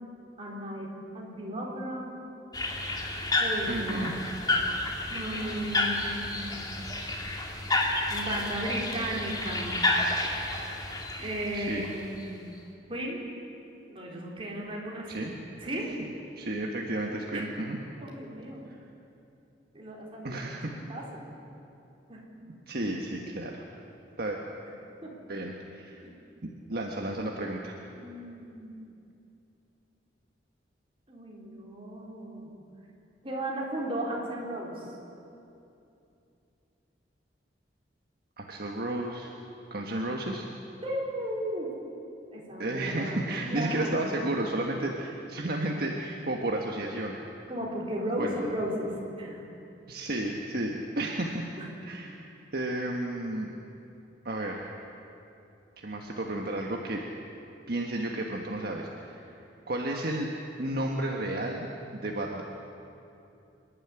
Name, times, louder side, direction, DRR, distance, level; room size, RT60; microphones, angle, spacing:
voice 1, 0.4-2.1 3.4-4.2 5.1-6.6 8.1-9.8 11.2-12.4 12.9-13.2 13.9-15.3 15.6-15.9 17.3-17.4 18.0-18.7 19.7-21.2 22.1-22.2 25.0-25.1 26.0-26.1 27.9-28.8 31.1-32.5 33.2-34.9 40.8-41.7 42.3-44.1 47.5-49.4 51.6-51.7, right 1 dB, 30° right, -3 dB, 4.3 m, -35 dB
sound 1, 2.5-12.2, left 2 dB, 20° left, 2.2 m, -30 dB
voice 2, 3.7-4.1 11.5-11.9 15.1-15.3 16.4-17.8 18.7-18.8 20.2-20.7 22.7-23.7 24.2-24.4 25.3-26.0 26.4-27.8 38.4-39.3 39.7-40.5 42.6-47.2 48.1-48.4 49.9-51.5 51.9-53.5 54.2-54.6 55.8-57.0 57.7-59.4 59.7-60.3 60.6-61.7 61.9-62.4, right 1 dB, 55° right, 0 dB, 1.5 m, -32 dB
26.0 x 11.5 x 9.9 m, 2.7 s
head